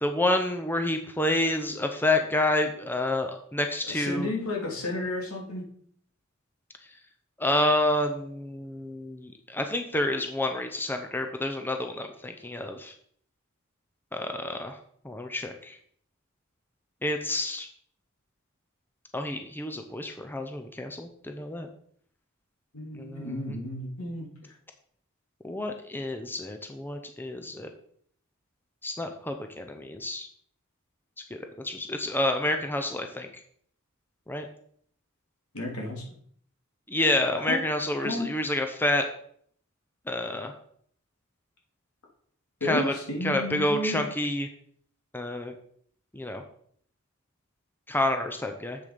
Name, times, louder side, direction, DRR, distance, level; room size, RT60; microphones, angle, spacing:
voice 1, 0.0-4.3 7.4-12.9 14.1-14.8 15.0-15.8 17.0-17.7 19.1-21.7 22.9-23.4 25.4-27.7 28.8-30.3 31.3-33.3 34.3-34.5 36.9-39.0 40.1-40.5 42.6-42.9 43.2-44.5 45.1-45.5 46.1-46.4 47.9-48.8, left 1 dB, 10° left, 5 dB, 0.7 m, -29 dB
voice 2, 3.9-5.6 22.7-24.3 35.5-36.0 37.5-37.6 38.0-38.3 42.6-44.0, left 1 dB, 80° left, -1 dB, 3.0 m, -32 dB
7.8 x 6.9 x 5.1 m, 0.62 s
head